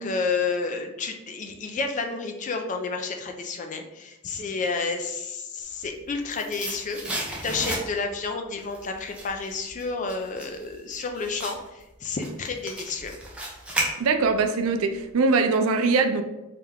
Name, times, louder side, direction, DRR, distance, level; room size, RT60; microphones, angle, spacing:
voice 1, 0.0-13.2, left 4 dB, 35° left, 4 dB, 0.4 m, -30 dB
sound 1, 5.8-8.2 8.6-14.4 14.8-14.9, right 1 dB, 5° right, 0.7 m, -34 dB
voice 2, 14.0-16.2, right 4 dB, 80° right, 7 dB, 0.4 m, -22 dB
3.3 x 2.8 x 3.5 m, 1.0 s
head